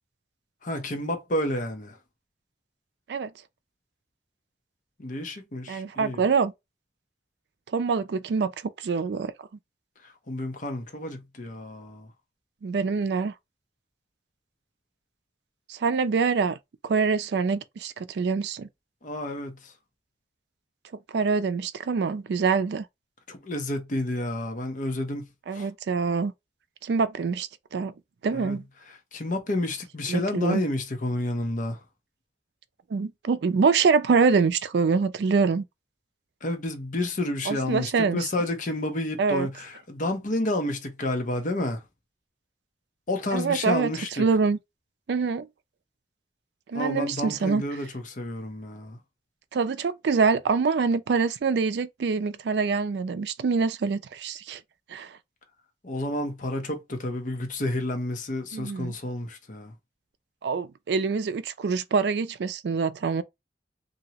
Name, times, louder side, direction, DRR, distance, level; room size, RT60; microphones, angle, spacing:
voice 1, 0.6-2.0 5.0-6.2 10.3-12.1 19.0-19.7 23.3-25.2 25.5-25.7 28.3-28.6 29.1-31.8 36.4-41.8 43.1-44.2 46.7-49.0 55.8-59.7, left 1 dB, 45° left, 0.8 m, -30 dB
voice 2, 5.7-6.5 7.7-9.3 12.6-13.3 15.7-16.6 16.8-18.7 21.1-22.9 25.5-26.3 26.8-27.9 28.2-28.6 30.1-30.6 32.9-35.6 37.5-38.3 39.2-39.5 43.3-44.6 45.1-45.5 46.7-47.6 49.5-54.6 54.9-55.2 58.5-58.9 60.4-63.2, right 5 dB, 75° right, 0.4 m, -25 dB
2.9 x 2.7 x 2.8 m
head